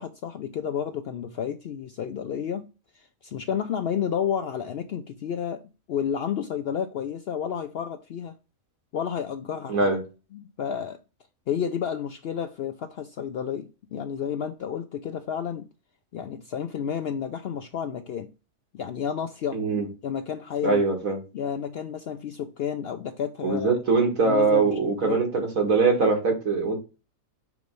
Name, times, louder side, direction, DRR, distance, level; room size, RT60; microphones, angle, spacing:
voice 1, 0.0-2.7 2.9-5.6 5.9-8.3 8.9-9.9 10.3-11.0 11.5-15.7 16.1-18.3 18.7-19.6 20.0-20.8 21.3-23.7 24.3-24.7 25.0-25.2, left 8 dB, 65° left, 0.6 m, -31 dB
voice 2, 9.7-10.0 19.5-19.9 20.6-21.2 23.4-26.8, right 4 dB, 75° right, 2.1 m, -22 dB
6.0 x 3.2 x 5.1 m
omnidirectional pair, 1.4 m